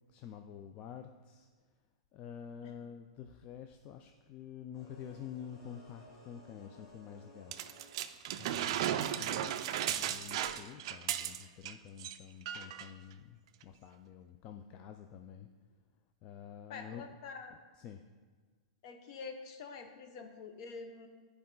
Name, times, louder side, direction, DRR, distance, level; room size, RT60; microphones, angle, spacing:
voice 1, 0.1-1.5 2.1-7.5 8.3-15.5 16.2-17.2 17.5-18.0, left 8 dB, 30° left, 6 dB, 0.3 m, -49 dB
sound 1, 4.7-8.2, left 1 dB, 65° left, 2.3 m, -58 dB
sound 2, 7.5-11.7 12.0-12.2 12.5-12.9 13.6-13.7, right 11 dB, 55° right, 0.4 m, -35 dB
voice 2, 16.7-17.6 18.8-21.1, left 5 dB, 50° left, 6 dB, 0.9 m, -46 dB
9.5 x 4.7 x 3.9 m, 1.5 s
hypercardioid pair, 150°, 4 cm